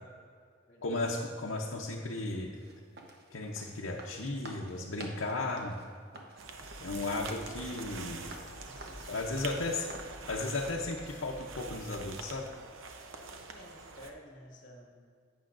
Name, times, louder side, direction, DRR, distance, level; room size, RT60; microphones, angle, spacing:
voice 1, 0.8-2.5 3.3-5.8 6.8-8.2 9.1-9.9 10.3-12.5, left 2 dB, 85° left, -2 dB, 0.8 m, -35 dB
sound 1, 2.5-10.6, right 2 dB, 55° right, 1.0 m, -50 dB
sound 2, 6.4-14.1, right 4 dB, 80° right, 0.8 m, -46 dB
sound 3, 6.6-12.7, left 1 dB, 60° left, 1.1 m, -51 dB
voice 2, 8.7-9.9 13.1-14.9, left 1 dB, 45° left, 0 dB, 1.4 m, -53 dB
11.5 x 8.8 x 2.6 m, 2.2 s
head